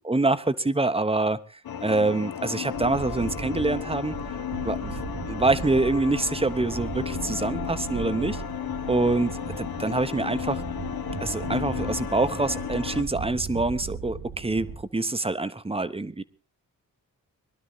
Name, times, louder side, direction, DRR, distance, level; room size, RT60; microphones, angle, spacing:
voice 1, 0.0-1.4 1.8-4.2 4.6-5.0 5.3-8.4 8.9-10.6 11.2-16.2, right 2 dB, 15° right, 12 dB, 0.9 m, -25 dB
sound 1, 1.6-13.0, left 10 dB, 80° left, 1.2 m, -34 dB
sound 2, 2.7-14.8, right 5 dB, 70° right, 1.5 m, -37 dB
21.5 x 12.5 x 4.0 m, 0.36 s
wide cardioid pair, 105°, 35 cm